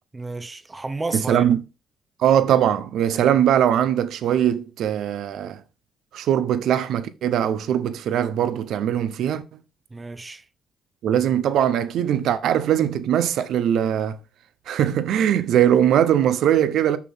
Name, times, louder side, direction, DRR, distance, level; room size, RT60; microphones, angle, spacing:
voice 1, 0.1-1.5 9.9-10.5, right 3 dB, 20° right, 0.8 m, -31 dB
voice 2, 1.1-1.6 2.2-5.6 6.1-9.4 11.0-14.2 14.7-17.0, right 10 dB, 75° right, 0.8 m, -21 dB
6.3 x 5.9 x 3.7 m
cardioid pair, 90°, 0 cm